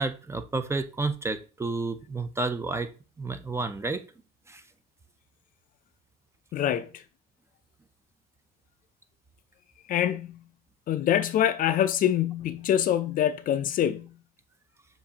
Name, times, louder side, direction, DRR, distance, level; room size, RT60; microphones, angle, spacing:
voice 1, 0.0-2.9 3.2-4.0 4.5-4.6, right 3 dB, 15° right, 0.5 m, -30 dB
voice 2, 6.5-6.9 9.9-10.4 10.9-14.1, left 10 dB, 55° left, 0.4 m, -25 dB
7.0 x 2.6 x 2.8 m
cardioid pair, 110°, 17 cm